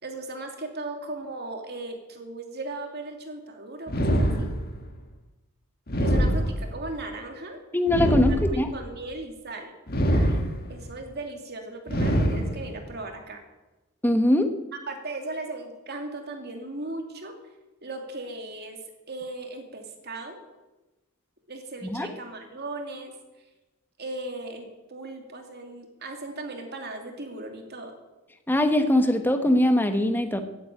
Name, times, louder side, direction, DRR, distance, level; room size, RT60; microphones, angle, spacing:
voice 1, 0.0-4.5 6.0-7.6 8.3-9.7 10.1-10.4 10.7-13.4 14.9-17.3 17.8-18.8 19.1-20.4 21.5-23.1 24.0-27.9, right 2 dB, 45° right, 4 dB, 2.7 m, -37 dB
sound 1, 3.9-4.9 5.9-6.9 7.9-8.9 9.9-10.9 11.9-12.9, equal, 45° left, 1.7 m, -24 dB
voice 2, 7.7-8.7 14.0-14.5 21.8-22.1 28.5-30.4, left 1 dB, 10° left, 7 dB, 1.1 m, -22 dB
15.5 x 9.0 x 9.3 m, 1.1 s
head